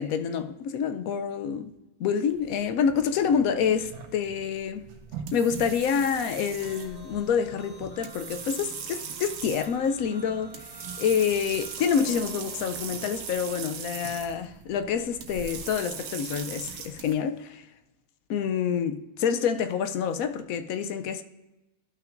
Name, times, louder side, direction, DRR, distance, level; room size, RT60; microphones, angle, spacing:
voice 1, 0.0-1.7 2.0-4.8 5.3-10.6 11.0-17.6 18.3-21.2, left 7 dB, 75° left, 1.0 m, -27 dB
sound 1, 2.3-17.1, right 6 dB, 80° right, 1.3 m, -40 dB
sound 2, 6.6-13.4, right 2 dB, 30° left, 1.3 m, -50 dB
12.5 x 5.8 x 2.5 m
omnidirectional pair, 1.5 m